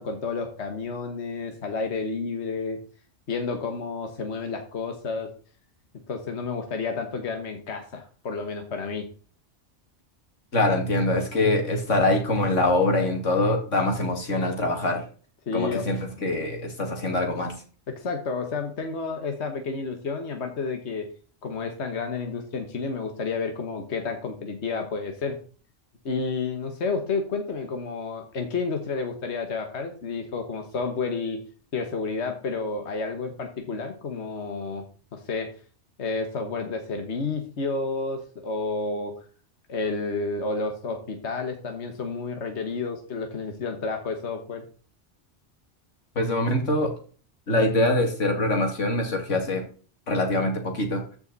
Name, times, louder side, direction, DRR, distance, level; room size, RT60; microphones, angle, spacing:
voice 1, 0.0-2.8 3.3-5.3 6.1-9.1 15.5-15.8 17.9-21.1 21.4-25.4 26.0-31.4 31.7-34.8 35.1-35.5 36.0-39.1 39.7-44.6, left 4 dB, 65° left, 5 dB, 1.5 m, -30 dB
voice 2, 10.5-15.0 15.5-17.5 46.2-46.9 47.5-49.6 50.1-51.0, left 2 dB, 90° left, 3 dB, 2.6 m, -24 dB
14.0 x 5.6 x 4.1 m, 0.40 s
omnidirectional pair, 1.2 m